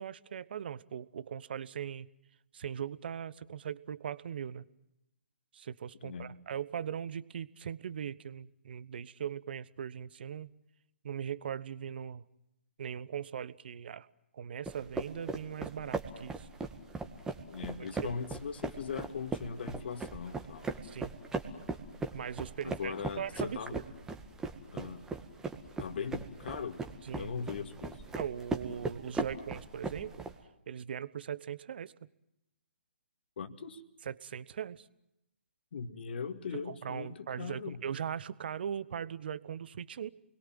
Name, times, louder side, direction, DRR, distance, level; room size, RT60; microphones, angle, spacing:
voice 1, 0.0-2.1 2.5-4.7 5.5-10.5 11.0-12.2 12.8-14.1 14.3-16.5 17.8-18.1 20.8-21.1 22.1-23.8 27.0-27.3 28.1-30.3 30.7-31.9 34.1-34.9 36.5-40.1, right 8 dB, 55° right, 18 dB, 1.0 m, -40 dB
voice 2, 6.0-6.4 17.5-20.8 22.6-23.8 24.7-25.0 25.8-26.8 27.2-28.0 33.4-33.8 35.7-37.8, left 6 dB, 55° left, 9 dB, 2.4 m, -40 dB
sound 1, 14.7-30.3, right 3 dB, 10° right, 2.0 m, -39 dB
29.0 x 22.0 x 7.7 m, 0.85 s
figure-of-eight pair, 135°, 7 cm